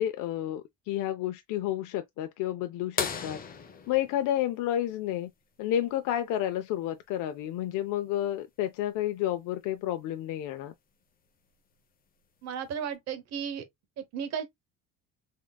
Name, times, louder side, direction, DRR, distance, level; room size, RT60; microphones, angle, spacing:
voice 1, 0.0-3.4 3.9-5.3 5.6-10.7, left 12 dB, 75° left, 0.5 m, -30 dB
sound 1, 3.0-5.4 7.4-7.5 9.7-9.8 11.5-11.8 12.6-12.7, left 6 dB, 30° left, 0.7 m, -36 dB
voice 2, 12.4-13.6 14.0-14.4, right 7 dB, 55° right, 0.9 m, -34 dB
3.7 x 3.6 x 2.2 m
cardioid pair, 165°, 31 cm